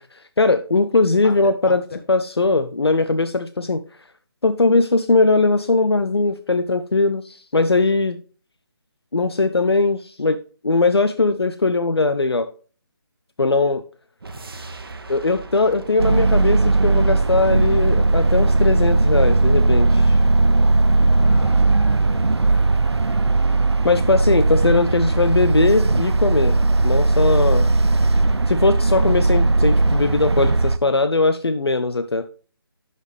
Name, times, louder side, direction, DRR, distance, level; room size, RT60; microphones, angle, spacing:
voice 1, 0.0-1.8 2.1-3.8 4.4-8.2 9.1-10.4 10.6-12.5 13.4-13.8 15.1-20.2 23.8-27.7 28.5-32.2, left 3 dB, 80° left, 10 dB, 0.6 m, -20 dB
voice 2, 1.7-2.0 21.1-24.4, left 5 dB, 45° left, 4 dB, 1.7 m, -40 dB
sound 1, 14.2-19.8, right 3 dB, 65° right, 1.3 m, -39 dB
sound 2, 16.0-30.8, right 3 dB, 90° right, 0.5 m, -17 dB
11.0 x 4.1 x 3.3 m, 0.39 s
figure-of-eight pair, 150°, 13 cm